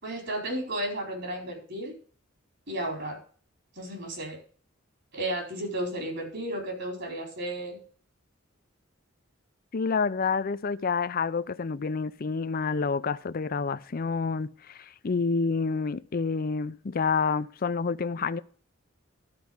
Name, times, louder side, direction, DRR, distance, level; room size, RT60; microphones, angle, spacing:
voice 1, 0.0-1.9 2.7-3.2 3.8-4.4 5.1-7.8, right 1 dB, 60° right, 4.6 m, -33 dB
voice 2, 9.7-18.4, left 5 dB, 45° left, 0.5 m, -28 dB
12.5 x 4.8 x 8.0 m
head